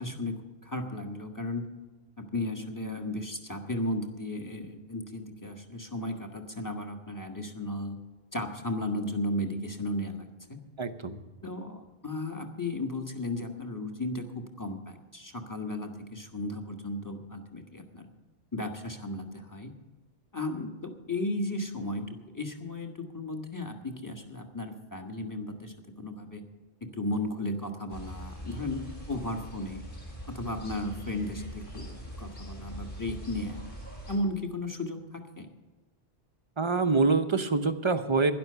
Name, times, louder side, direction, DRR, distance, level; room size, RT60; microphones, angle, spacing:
voice 1, 0.0-1.7 2.2-8.0 8.3-10.6 11.4-18.1 18.5-19.7 20.3-26.4 26.8-29.8 30.3-33.6 34.1-35.5, left 1 dB, 15° left, 3 dB, 1.5 m, -35 dB
voice 2, 10.8-11.2 36.6-38.3, right 4 dB, 30° right, 9 dB, 0.8 m, -25 dB
sound 1, 27.9-34.2, equal, 55° left, 4.4 m, -42 dB
12.0 x 11.0 x 6.7 m, 1.2 s
omnidirectional pair, 1.1 m